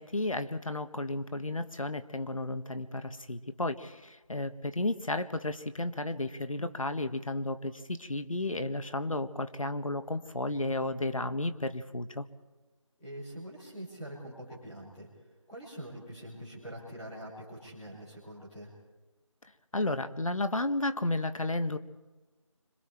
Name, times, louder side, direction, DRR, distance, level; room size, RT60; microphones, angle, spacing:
voice 1, 0.0-12.3 19.7-21.8, left 2 dB, 90° left, 9 dB, 1.6 m, -33 dB
voice 2, 10.4-10.8 13.0-15.1 15.5-18.7, right 1 dB, 5° left, -11 dB, 3.1 m, -44 dB
26.0 x 25.5 x 4.5 m, 1.2 s
figure-of-eight pair, 175°, 17 cm